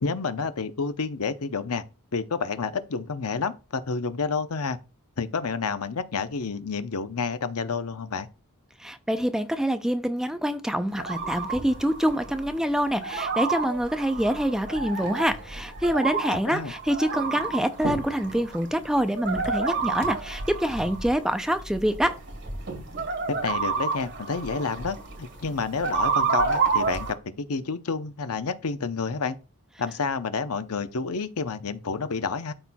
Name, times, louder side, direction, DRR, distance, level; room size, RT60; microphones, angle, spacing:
voice 1, 0.0-1.8 2.1-4.8 5.2-8.3 16.3-16.7 23.3-29.4 29.8-32.5, left 4 dB, 80° left, 0.7 m, -29 dB
voice 2, 8.8-22.2, equal, 5° right, 0.4 m, -26 dB
sound 1, 10.9-27.1, right 4 dB, 55° right, 2.0 m, -30 dB
12.5 x 4.3 x 2.3 m
head